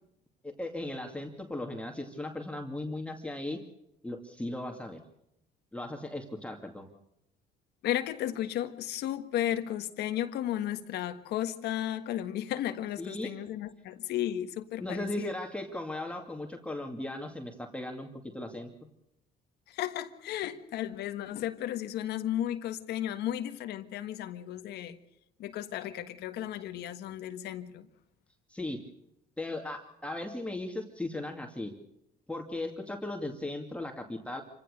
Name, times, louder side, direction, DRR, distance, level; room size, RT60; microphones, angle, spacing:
voice 1, 0.4-3.6 4.0-5.0 5.7-6.9 13.0-13.3 14.8-18.1 18.3-18.7 28.5-28.8 29.4-31.7 32.3-34.4, left 1 dB, 5° left, 2.4 m, -37 dB
voice 2, 7.8-15.4 19.7-25.0 25.4-27.9, left 12 dB, 80° left, 1.6 m, -34 dB
27.0 x 16.0 x 6.7 m
cardioid pair, 110°, 17 cm